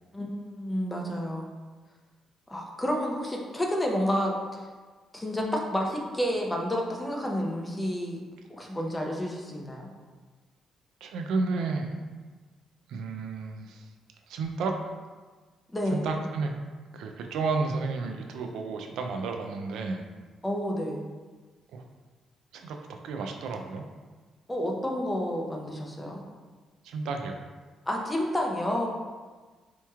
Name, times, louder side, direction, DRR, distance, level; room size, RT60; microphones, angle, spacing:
voice 1, 0.1-1.5 2.5-4.7 5.1-8.2 8.5-9.9 15.7-16.1 20.4-21.0 24.5-26.2 27.9-28.9, equal, 10° left, 0 dB, 0.6 m, -30 dB
voice 2, 11.0-12.0 12.9-13.9 14.3-14.8 15.9-16.5 16.9-20.0 21.7-21.8 22.5-23.8 26.8-27.4, right 4 dB, 80° right, 3 dB, 0.3 m, -32 dB
4.3 x 3.0 x 2.3 m, 1.4 s
cardioid pair, 90°, 0 cm